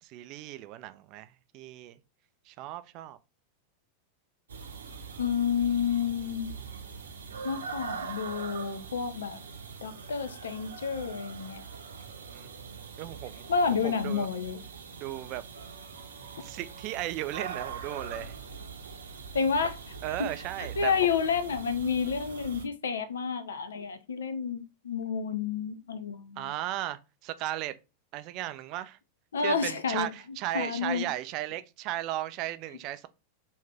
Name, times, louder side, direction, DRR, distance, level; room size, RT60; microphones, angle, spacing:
voice 1, 0.0-2.0 2.5-3.2 12.1-12.5 13.0-14.3 15.0-15.4 16.4-18.3 19.6-19.7 20.0-20.9 26.4-27.7 28.1-29.0 29.4-33.1, right 14 dB, 40° right, 0.3 m, -36 dB
sound 1, 4.5-22.6, right 5 dB, 70° right, 0.7 m, -42 dB
voice 2, 5.2-6.5 7.4-9.4 9.8-11.6 13.5-14.6 19.3-19.8 20.2-20.3 20.6-26.5 29.3-30.1 30.5-31.1, left 6 dB, 65° left, 0.5 m, -30 dB
3.2 x 2.6 x 3.3 m
figure-of-eight pair, 90°, 0 cm